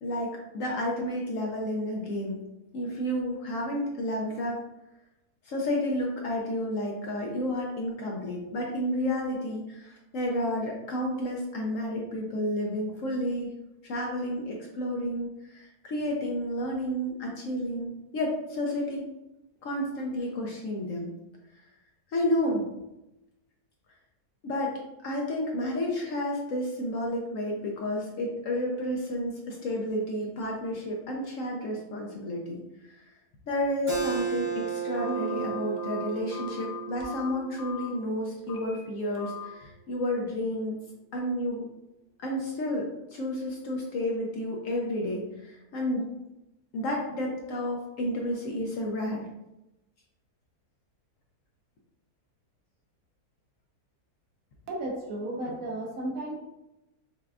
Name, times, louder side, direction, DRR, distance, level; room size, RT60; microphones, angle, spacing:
voice 1, 0.0-2.4 2.7-4.6 5.4-13.5 13.8-19.1 19.6-21.1 22.1-22.7 24.4-32.6 32.9-33.0 33.5-40.8 41.1-41.7 42.2-46.1 46.7-49.3, left 1 dB, 65° left, -1 dB, 0.9 m, -31 dB
Keyboard (musical), 33.9-39.1, right 7 dB, 35° right, 1.0 m, -34 dB
Telephone, 35.0-37.9 38.4-38.8 39.2-39.5, left 9 dB, 90° left, 1.3 m, -40 dB
voice 2, 54.7-56.4, right 1 dB, 70° right, 0 dB, 1.0 m, -33 dB
5.7 x 2.2 x 2.4 m, 0.94 s
omnidirectional pair, 1.7 m